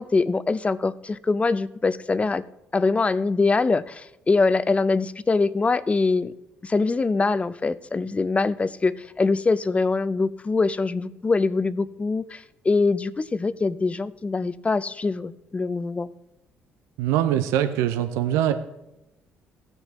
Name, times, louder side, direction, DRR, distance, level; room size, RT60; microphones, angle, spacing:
voice 1, 0.0-2.4 2.7-6.3 6.6-16.1, left 3 dB, 25° left, 15 dB, 0.6 m, -23 dB
voice 2, 17.0-18.5, right 11 dB, 80° right, 9 dB, 0.6 m, -22 dB
16.5 x 6.6 x 3.1 m, 0.91 s
hypercardioid pair, 55°, 5 cm